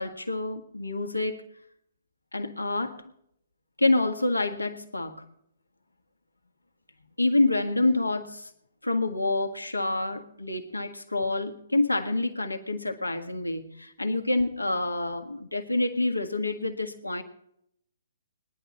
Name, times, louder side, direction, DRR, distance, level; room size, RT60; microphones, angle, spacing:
voice 1, 0.0-1.4 2.3-3.0 3.8-5.2 7.2-8.5 8.8-17.2, left 2 dB, 90° left, 4 dB, 1.6 m, -27 dB
20.5 x 10.5 x 4.2 m, 0.73 s
figure-of-eight pair, 125°, 0 cm